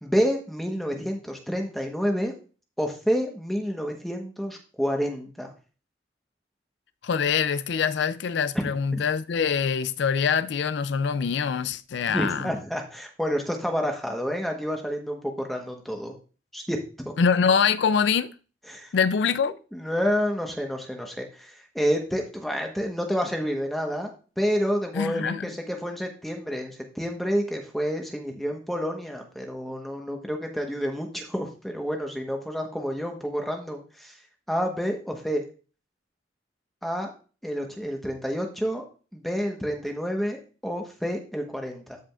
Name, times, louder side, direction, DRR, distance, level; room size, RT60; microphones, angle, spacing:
voice 1, 0.0-2.3 2.8-5.5 8.5-8.7 12.1-16.1 16.5-16.8 17.0-17.1 18.7-18.9 19.7-24.1 24.4-34.2 34.5-35.4 36.8-37.1 37.4-38.9 39.1-42.0, equal, ahead, 1.1 m, -29 dB
voice 2, 7.0-12.5 17.2-18.3 18.9-19.5 24.9-25.5, left 6 dB, 75° left, 0.4 m, -24 dB
13.5 x 4.9 x 2.4 m
head